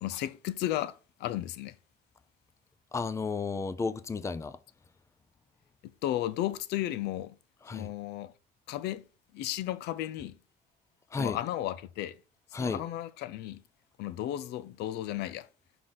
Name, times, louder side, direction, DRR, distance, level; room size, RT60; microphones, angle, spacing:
voice 1, 0.0-1.8 6.0-7.4 7.7-8.3 8.7-9.0 9.3-10.4 11.2-12.2 12.6-13.6 14.0-15.5, left 13 dB, 80° left, 0.5 m, -34 dB
voice 2, 2.9-4.6 7.6-7.9 11.1-11.4 12.5-12.8, left 4 dB, 15° left, 0.5 m, -33 dB
5.7 x 5.0 x 3.9 m
cardioid pair, 110°, 17 cm